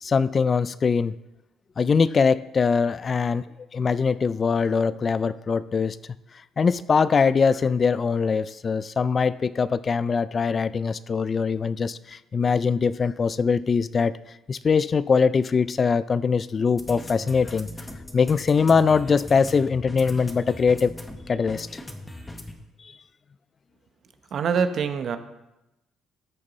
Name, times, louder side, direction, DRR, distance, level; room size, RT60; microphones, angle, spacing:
voice 1, 0.0-1.2 1.8-3.4 3.7-6.0 6.6-14.1 14.5-17.7 18.1-21.0 21.3-21.7, left 5 dB, 35° left, 17 dB, 0.3 m, -22 dB
sound 1, 16.8-22.5, left 1 dB, 15° left, 1.1 m, -39 dB
voice 2, 24.3-25.2, right 6 dB, 55° right, 9 dB, 0.8 m, -24 dB
13.0 x 6.7 x 4.1 m, 0.96 s
cardioid pair, 105°, 0 cm